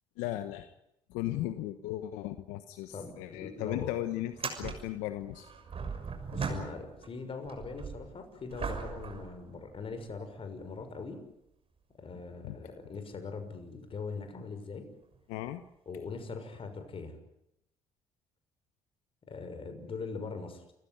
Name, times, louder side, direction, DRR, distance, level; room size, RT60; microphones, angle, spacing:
voice 1, 0.2-0.7 1.1-5.5 12.4-12.6 15.3-15.6, left 14 dB, 90° left, 10 dB, 1.1 m, -36 dB
voice 2, 2.9-3.9 6.3-11.2 12.0-14.9 15.9-17.1 19.3-20.7, left 4 dB, 50° left, 8 dB, 6.4 m, -41 dB
sound 1, 2.9-3.0 3.3-3.4 4.2-7.1 7.4-10.1 10.8-10.9 15.0-15.2 16.5-16.6, right 5 dB, 50° right, 6.4 m, -39 dB
28.5 x 15.5 x 9.7 m, 0.83 s
supercardioid pair, 60°, 12 cm